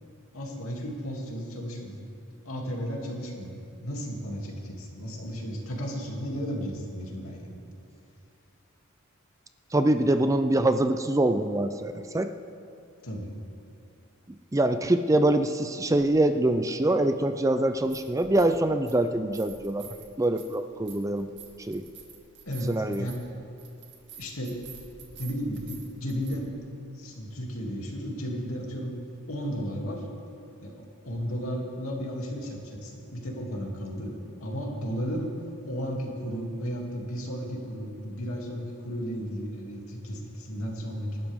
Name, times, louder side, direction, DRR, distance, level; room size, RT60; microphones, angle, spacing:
voice 1, 0.3-2.0 2.4-7.6 13.0-13.3 22.5-23.2 24.2-24.6 25.2-26.5 26.9-28.9 29.3-30.1 30.6-34.1 34.4-35.3 35.6-41.3, equal, 75° left, -1 dB, 2.9 m, -34 dB
voice 2, 9.7-12.3 14.5-19.9 20.2-21.3 21.7-21.8 22.7-23.1, right 1 dB, 15° right, 9 dB, 0.4 m, -24 dB
sound 1, 17.8-18.6 18.9-26.4, right 6 dB, 55° right, 2.3 m, -49 dB
27.0 x 12.0 x 3.7 m, 2.6 s
head